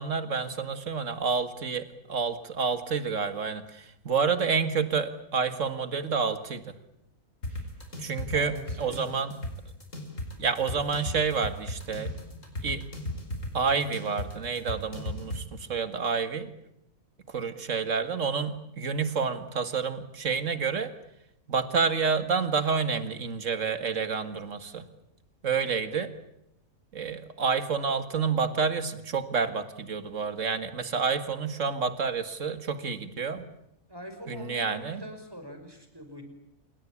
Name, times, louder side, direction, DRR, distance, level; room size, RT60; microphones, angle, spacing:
voice 1, 0.0-6.7 8.0-9.4 10.4-12.1 12.6-12.8 13.5-16.5 17.3-20.9 21.5-24.9 25.4-26.1 26.9-33.4 34.3-35.0, right 5 dB, 65° right, 10 dB, 2.2 m, -29 dB
sound 1, 7.4-15.4, left 1 dB, 65° left, 5.1 m, -36 dB
voice 2, 8.3-9.2 33.9-36.2, right 1 dB, 15° right, 6 dB, 5.4 m, -43 dB
27.0 x 23.0 x 8.7 m, 0.80 s
omnidirectional pair, 1.4 m